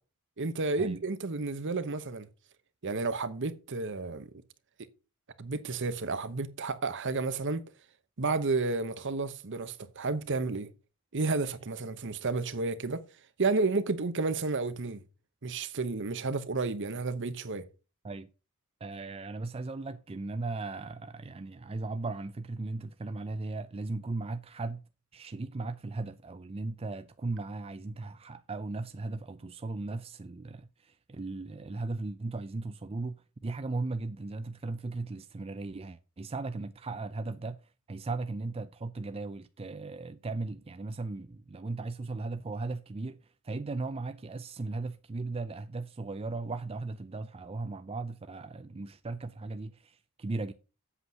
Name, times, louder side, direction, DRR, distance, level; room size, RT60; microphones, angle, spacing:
voice 1, 0.4-2.3 2.8-4.3 5.4-7.6 8.2-10.7 11.1-13.0 13.4-15.0 15.4-17.7, right 3 dB, 55° right, 1.0 m, -31 dB
voice 2, 18.8-24.8 25.1-50.5, right 3 dB, 25° right, 0.5 m, -37 dB
8.0 x 7.9 x 5.7 m
head